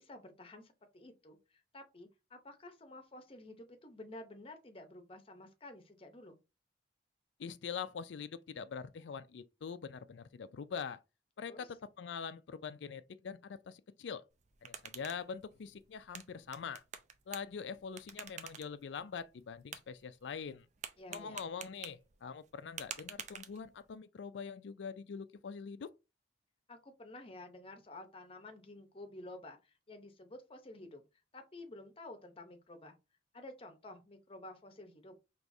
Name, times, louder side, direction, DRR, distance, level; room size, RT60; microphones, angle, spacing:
voice 1, 0.0-6.4 11.5-11.7 21.0-21.5 26.7-31.0 31.3-33.0 33.3-35.2, left 2 dB, 30° left, 0.7 m, -51 dB
voice 2, 7.4-11.0 11.4-14.2 14.6-16.8 17.3-20.7 21.1-25.9, left 6 dB, 80° left, 0.4 m, -44 dB
sound 1, 14.3-24.0, right 7 dB, 40° right, 0.5 m, -51 dB
4.8 x 3.0 x 2.6 m
head